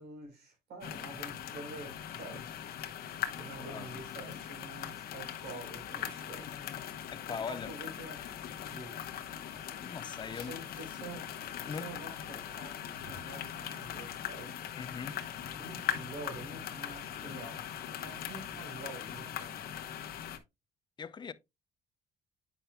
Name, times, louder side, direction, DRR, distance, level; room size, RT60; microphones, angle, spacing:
voice 1, 0.0-2.4 3.4-6.5 7.3-8.2 8.7-9.1 10.3-11.3 11.7-14.7 15.6-19.6, right 3 dB, 75° right, 3.9 m, -47 dB
sound 1, 0.8-20.4, left 10 dB, 65° left, 1.0 m, -41 dB
sound 2, 1.1-20.2, right 2 dB, 40° right, 2.8 m, -64 dB
voice 2, 3.6-3.9 6.4-6.9 7.1-7.7 9.8-10.6 11.6-11.9 14.8-15.3 21.0-21.3, left 6 dB, 25° left, 0.4 m, -41 dB
8.5 x 5.6 x 2.2 m
cardioid pair, 110°, 17 cm